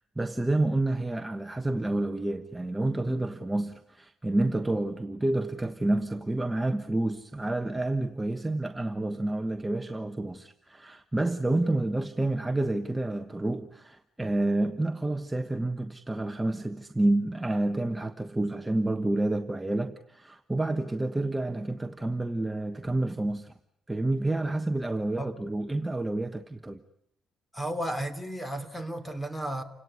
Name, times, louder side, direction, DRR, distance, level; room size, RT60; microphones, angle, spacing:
voice 1, 0.2-23.5 23.9-26.8, right 2 dB, 10° right, 1.2 m, -29 dB
voice 2, 27.5-29.6, right 1 dB, 5° left, 3.0 m, -33 dB
30.0 x 18.0 x 9.7 m
cardioid pair, 90°, 0 cm